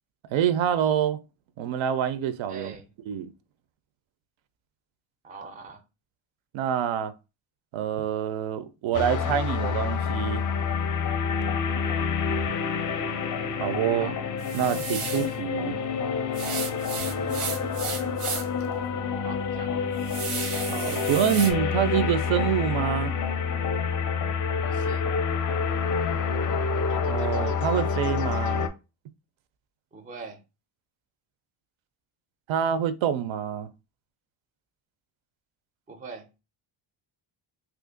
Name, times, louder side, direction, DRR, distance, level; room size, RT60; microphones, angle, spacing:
voice 1, 0.3-1.2 1.6-2.7 3.1-3.3 6.5-7.1 7.7-10.4 13.6-14.1 14.5-15.8 20.7-23.1 27.1-28.6 32.5-33.7, right 9 dB, 70° right, 0.5 m, -26 dB
voice 2, 2.5-2.9 5.2-5.8 11.7-12.0 14.0-14.2 15.9-16.0 19.2-20.0 24.6-25.1 29.9-30.4 35.9-36.3, right 4 dB, 20° right, 0.4 m, -43 dB
sound 1, 8.9-28.7, left 6 dB, 40° left, 0.4 m, -28 dB
sound 2, 14.4-15.3 16.3-18.6 19.0-19.1 19.6-21.5, right 6 dB, 90° right, 0.9 m, -34 dB
3.0 x 2.5 x 3.7 m
cardioid pair, 150°, 49 cm